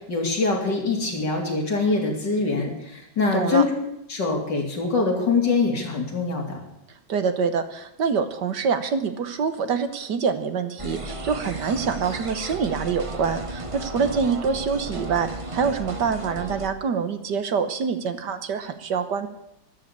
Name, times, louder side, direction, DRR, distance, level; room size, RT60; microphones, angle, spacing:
voice 1, 0.1-3.7 4.1-6.6, left 3 dB, 65° left, 0 dB, 4.0 m, -24 dB
voice 2, 3.3-3.6 7.1-19.3, right 6 dB, 65° right, 10 dB, 1.7 m, -25 dB
sound 1, 10.8-16.7, right 2 dB, 25° right, 0.7 m, -34 dB
13.5 x 12.5 x 8.4 m, 0.83 s
omnidirectional pair, 2.0 m